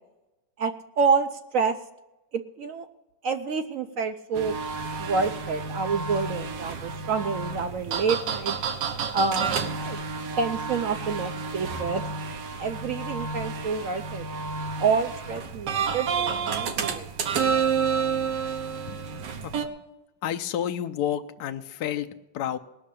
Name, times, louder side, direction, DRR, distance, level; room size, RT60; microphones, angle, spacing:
voice 1, 0.6-1.8 2.3-2.9 3.2-4.6 5.0-8.5 9.1-10.0 10.4-12.1 12.6-14.3 14.8-17.1, right 5 dB, 60° right, 8 dB, 0.9 m, -28 dB
sound 1, 4.3-19.7, right 6 dB, 80° right, 1.7 m, -30 dB
voice 2, 18.9-19.7 20.2-22.6, left 10 dB, 70° left, 8 dB, 1.2 m, -31 dB
19.0 x 6.5 x 8.4 m, 1.0 s
omnidirectional pair, 1.9 m